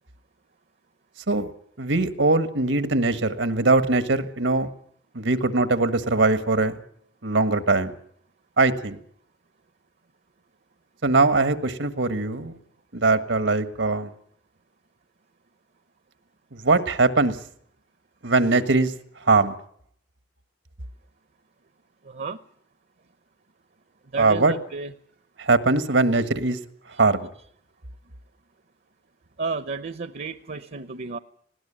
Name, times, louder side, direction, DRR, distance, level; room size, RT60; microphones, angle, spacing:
voice 1, 1.8-4.7 5.1-6.8 7.2-7.9 8.6-9.0 11.0-12.6 12.9-14.1 16.5-17.4 18.2-18.9 19.2-19.5 24.1-24.5 25.4-26.6 27.0-27.3, right 3 dB, 85° right, 10 dB, 1.6 m, -21 dB
voice 2, 22.0-22.4 24.1-24.9 29.4-31.2, right 4 dB, 55° right, 13 dB, 0.8 m, -32 dB
19.5 x 17.5 x 8.8 m, 0.65 s
head